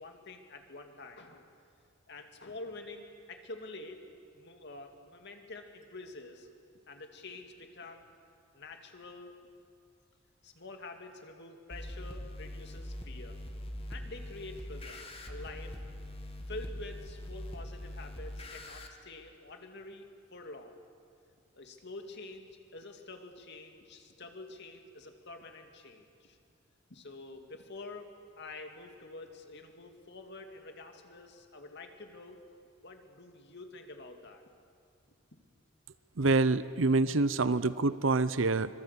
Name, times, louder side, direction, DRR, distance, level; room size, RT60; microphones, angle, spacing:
voice 1, 0.0-1.5 2.1-4.0 4.3-6.5 6.9-8.1 8.5-9.4 10.4-13.4 13.9-15.0 15.3-15.8 16.5-20.8 21.5-26.4 26.9-32.4 32.8-34.4, left 2 dB, 60° left, 5 dB, 2.4 m, -47 dB
sound 1, 11.7-18.9, left 1 dB, 30° left, 2.1 m, -42 dB
voice 2, 36.2-38.7, right 3 dB, 70° right, 15 dB, 0.8 m, -26 dB
25.0 x 22.5 x 8.3 m, 2.3 s
head